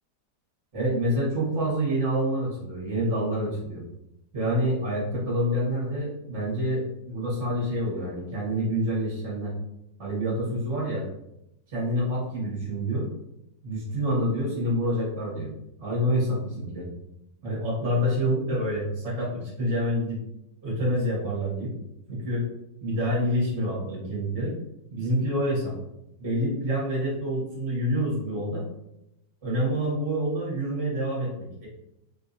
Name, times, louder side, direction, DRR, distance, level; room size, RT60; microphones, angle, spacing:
voice 1, 0.7-3.8 4.3-9.5 10.0-11.0 11.7-13.1 13.6-15.5 15.8-16.9 17.4-20.2 20.6-21.7 22.1-22.5 22.8-24.5 24.9-25.7 26.2-28.6 29.4-31.7, equal, 45° right, -6 dB, 1.5 m, -27 dB
3.6 x 2.7 x 2.6 m, 0.83 s
omnidirectional pair, 1.8 m